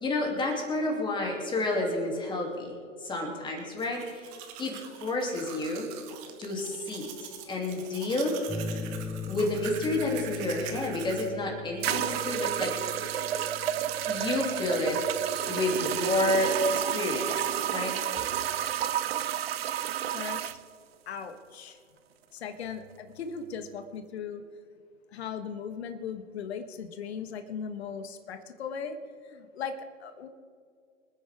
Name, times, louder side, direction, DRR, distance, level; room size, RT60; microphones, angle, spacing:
voice 1, 0.0-4.3 4.6-5.9 6.4-7.1 7.5-8.4 9.3-12.7 14.1-15.0 15.5-17.9, left 2 dB, 10° left, 0 dB, 2.9 m, -30 dB
Domestic sounds home sounds, 3.6-11.3, right 9 dB, 30° right, 1.7 m, -44 dB
sound 1, 8.5-15.7, left 4 dB, 5° right, 1.3 m, -41 dB
sound 2, 11.0-11.1 11.8-20.6, right 11 dB, 50° right, 0.8 m, -30 dB
voice 2, 20.1-20.5 21.1-21.8 22.3-24.4 25.1-30.3, left 6 dB, 55° left, 8 dB, 1.6 m, -38 dB
26.0 x 9.9 x 3.6 m, 2.4 s
hypercardioid pair, 135°, 39 cm